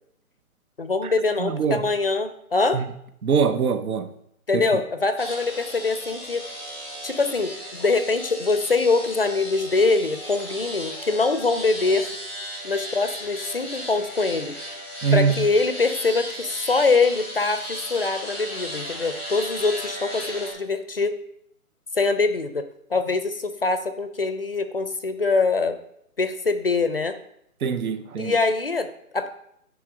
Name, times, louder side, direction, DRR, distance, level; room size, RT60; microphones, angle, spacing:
voice 1, 0.8-2.8 4.5-6.4 7.0-12.1 12.6-14.6 15.1-21.1 21.9-22.6 22.9-25.8 26.2-27.2 28.2-29.3, left 3 dB, 45° left, 0.4 m, -23 dB
voice 2, 1.4-1.9 2.7-2.9 3.2-4.1 4.5-4.8 15.0-15.5 27.6-28.4, right 6 dB, 75° right, 0.9 m, -23 dB
sound 1, 5.2-20.5, equal, 10° right, 0.7 m, -35 dB
9.6 x 3.5 x 4.9 m
hypercardioid pair, 170°, 43 cm